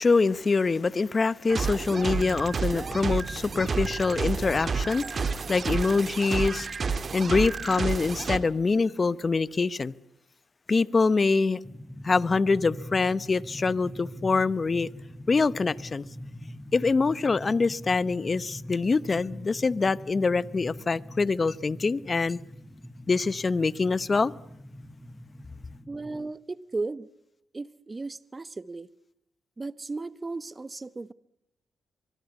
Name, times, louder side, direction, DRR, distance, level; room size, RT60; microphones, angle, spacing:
voice 1, 0.0-6.7 7.1-9.9 10.7-11.6 12.0-14.9 15.3-16.0 16.7-22.4 23.1-24.3, left 4 dB, 40° left, 1.0 m, -25 dB
sound 1, 1.5-8.4, right 5 dB, 50° right, 2.0 m, -30 dB
sound 2, 11.6-26.2, equal, 5° left, 5.9 m, -43 dB
voice 2, 25.9-27.1 27.5-28.9 29.6-31.1, right 3 dB, 30° right, 0.9 m, -35 dB
24.5 x 22.5 x 8.3 m
supercardioid pair, 50°, 0 cm